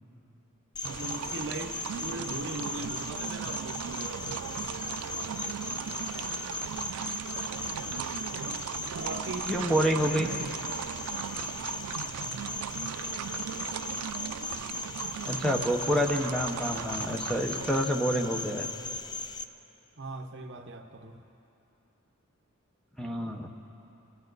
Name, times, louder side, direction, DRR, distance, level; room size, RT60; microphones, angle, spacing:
Cricket, 0.7-19.4, left 3 dB, 20° left, 0.4 m, -38 dB
voice 1, 0.8-4.5 8.9-10.5 20.0-21.2, right 2 dB, 55° right, 5 dB, 0.9 m, -40 dB
sound 1, 0.8-17.8, right 9 dB, 80° right, 0.3 m, -38 dB
voice 2, 9.5-10.3 15.2-18.7 23.0-23.5, equal, 5° left, 2 dB, 0.8 m, -28 dB
24.5 x 13.5 x 4.0 m, 2.9 s
head